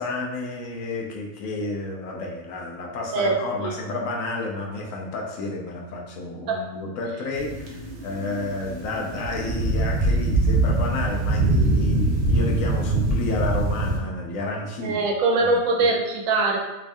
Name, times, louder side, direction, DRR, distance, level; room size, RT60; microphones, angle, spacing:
voice 1, 0.0-15.0 15.4-15.9, left 2 dB, 80° left, -1 dB, 1.0 m, -31 dB
sound 1, 7.3-14.0, right 2 dB, 65° right, 1.0 m, -23 dB
voice 2, 14.8-16.6, right 3 dB, 85° right, 1 dB, 1.1 m, -22 dB
3.2 x 2.5 x 3.5 m, 1.0 s
omnidirectional pair, 1.4 m